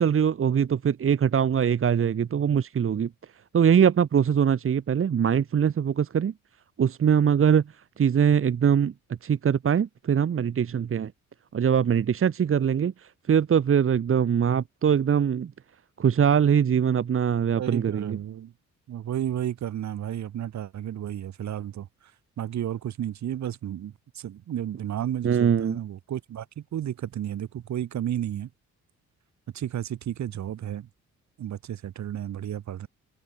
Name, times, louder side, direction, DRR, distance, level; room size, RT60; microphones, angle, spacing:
voice 1, 0.0-3.1 3.5-6.3 6.8-7.6 8.0-8.9 9.2-11.1 11.5-15.5 16.0-18.2 25.2-25.8, right 8 dB, 45° right, 1.6 m, -22 dB
voice 2, 17.6-18.5 18.9-21.9 22.4-28.5 29.5-30.9 31.4-32.9, right 11 dB, 65° right, 3.2 m, -32 dB
cardioid pair, 90°, 30 cm